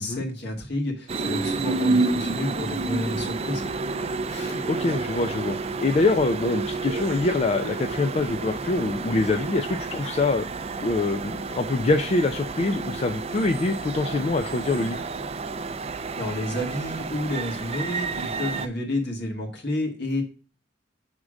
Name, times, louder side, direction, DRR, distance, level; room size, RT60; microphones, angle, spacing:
voice 1, 0.0-3.7 16.2-20.2, left 1 dB, 60° left, 1 dB, 1.8 m, -30 dB
sound 1, 1.1-18.7, right 3 dB, 35° right, 0.4 m, -30 dB
voice 2, 4.3-10.5 10.8-15.0, left 3 dB, 35° left, 6 dB, 0.4 m, -25 dB
6.3 x 3.6 x 6.2 m, 0.37 s
head